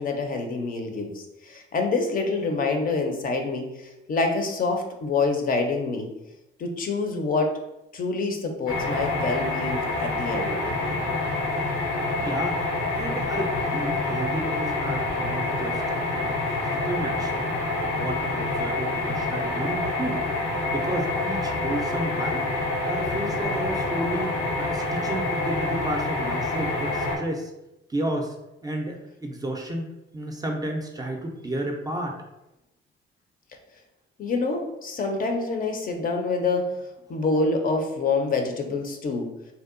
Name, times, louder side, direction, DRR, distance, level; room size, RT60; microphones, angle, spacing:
voice 1, 0.0-6.1 6.6-7.6 7.9-11.0 34.2-36.8 37.1-39.3, left 3 dB, 45° left, 4 dB, 0.5 m, -26 dB
sound 1, 8.7-27.2, left 2 dB, 80° left, 0.7 m, -27 dB
voice 2, 12.2-12.6 13.0-17.6 17.9-20.2 20.7-22.5 22.8-27.5 27.9-28.3 28.6-32.2, right 1 dB, 20° right, 1 dB, 0.4 m, -32 dB
2.7 x 2.1 x 2.4 m, 0.91 s
cardioid pair, 90°, 20 cm